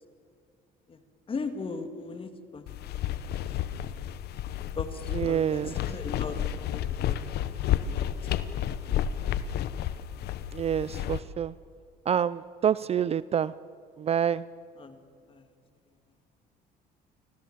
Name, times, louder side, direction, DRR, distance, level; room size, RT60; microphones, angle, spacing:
voice 1, 1.3-3.3 3.6-3.7 4.0-4.1 4.8-6.4 6.7-7.2 7.8-8.1 8.4-8.8 14.8-15.0 15.3-15.4, left 4 dB, 30° left, 8 dB, 2.2 m, -39 dB
sound 1, 2.7-11.2, left 11 dB, 70° left, 1.0 m, -31 dB
voice 2, 5.1-5.7 10.5-11.5 12.1-13.5 14.0-14.4, right 8 dB, 35° right, 18 dB, 0.5 m, -27 dB
26.0 x 15.5 x 7.3 m, 2.2 s
cardioid pair, 110°, 17 cm